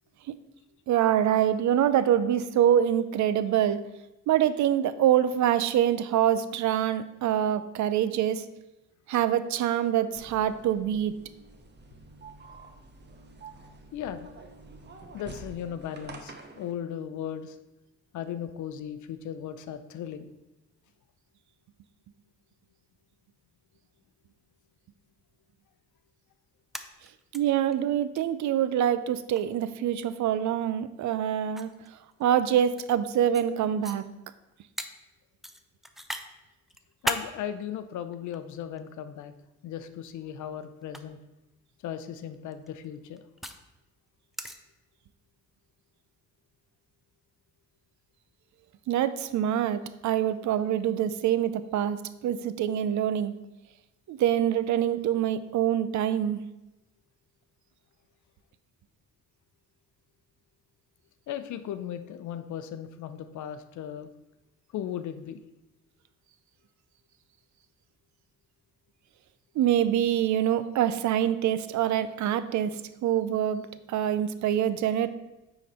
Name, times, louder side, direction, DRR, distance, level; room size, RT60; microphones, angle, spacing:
voice 1, 0.9-3.9 4.3-8.4 9.1-11.2 27.3-31.7 32.2-34.0 48.9-53.4 54.1-56.4 69.6-75.1, right 10 dB, 70° right, 13 dB, 0.6 m, -25 dB
sound 1, 10.1-16.7, right 3 dB, 35° right, 1.1 m, -48 dB
voice 2, 13.9-14.3 15.1-17.6 18.1-20.3 37.0-39.3 39.6-41.2 41.8-43.2 61.3-64.1 64.7-65.4, left 9 dB, 75° left, 11 dB, 0.7 m, -37 dB
sound 2, 26.5-27.4 27.7-27.8 28.2-28.3 29.3-29.6 30.7-30.8 31.5-32.9 33.3-33.5 33.8-34.0 34.8-34.9 35.4-36.3 36.7-37.3 38.1-38.9 39.9-40.2 40.8-41.0 42.3-43.6 44.3-44.6, equal, ahead, 0.5 m, -35 dB
9.2 x 4.0 x 4.2 m, 0.96 s
cardioid pair, 90°, 30 cm